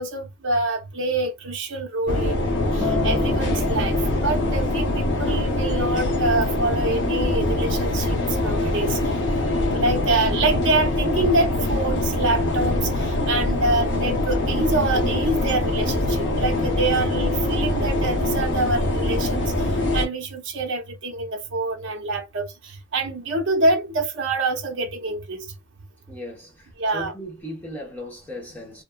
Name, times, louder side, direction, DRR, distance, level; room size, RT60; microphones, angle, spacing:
voice 1, 0.0-4.0 4.2-9.0 9.7-19.7 19.9-25.5 26.8-27.1, right 2 dB, 60° right, 0.6 m, -26 dB
sound 1, 2.1-20.1, left 1 dB, 55° left, 0.6 m, -23 dB
Acoustic guitar, 2.8-7.1 7.9-8.0, left 1 dB, 10° right, 0.4 m, -33 dB
voice 2, 26.1-28.8, left 1 dB, 10° left, 0.9 m, -37 dB
2.7 x 2.3 x 2.2 m
head